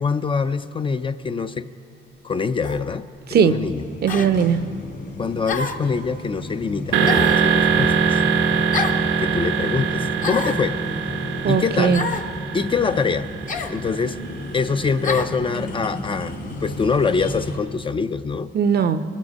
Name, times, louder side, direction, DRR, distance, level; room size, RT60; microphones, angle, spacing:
voice 1, 0.0-1.7 2.2-3.0 3.4-3.8 5.2-8.2 9.2-10.8 11.5-12.0 12.5-13.3 13.7-14.2 14.5-16.3 16.6-18.5, left 5 dB, 25° left, 11 dB, 0.4 m, -24 dB
sound 1, 2.6-2.9 4.1-4.3 5.5-5.9 7.0-7.5 8.7-9.0 10.2-10.6 11.9-12.3 13.5-13.8 15.0-15.3, left 4 dB, 40° left, 0.8 m, -28 dB
sound 2, 3.6-17.6, left 1 dB, 65° left, 2.5 m, -34 dB
voice 2, 4.0-4.6 11.4-12.1 18.5-19.0, right 7 dB, 55° right, 12 dB, 0.6 m, -18 dB
sound 3, 6.9-14.7, right 6 dB, 90° right, 1.0 m, -22 dB
20.0 x 7.3 x 6.4 m, 2.4 s
cardioid pair, 90°, 20 cm